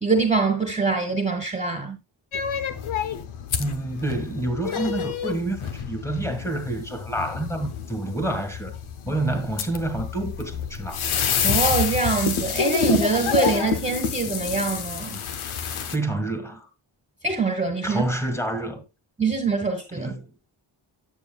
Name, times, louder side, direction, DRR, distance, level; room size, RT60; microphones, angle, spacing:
voice 1, 0.0-2.0 11.4-15.2 17.2-18.1 19.2-20.1, right 4 dB, 15° right, 1.3 m, -24 dB
sound 1, 2.3-16.0, left 7 dB, 90° left, 0.8 m, -28 dB
voice 2, 3.6-8.7 9.1-11.0 15.8-16.7 17.8-18.8 19.9-20.3, right 2 dB, 5° left, 1.8 m, -28 dB
9.1 x 6.9 x 2.3 m
cardioid pair, 65°, 48 cm